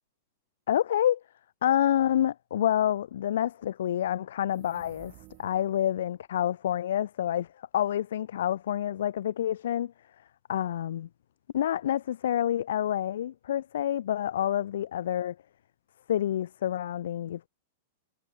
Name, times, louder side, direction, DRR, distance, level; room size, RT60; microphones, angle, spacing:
voice 1, 0.7-1.2 1.6-9.9 10.5-11.1 11.5-15.4 16.1-17.5, left 11 dB, 65° left, 0.3 m, -28 dB
sound 1, 4.4-5.9, right 27 dB, 45° right, 4.9 m, -54 dB
hypercardioid pair, 100°, 0 cm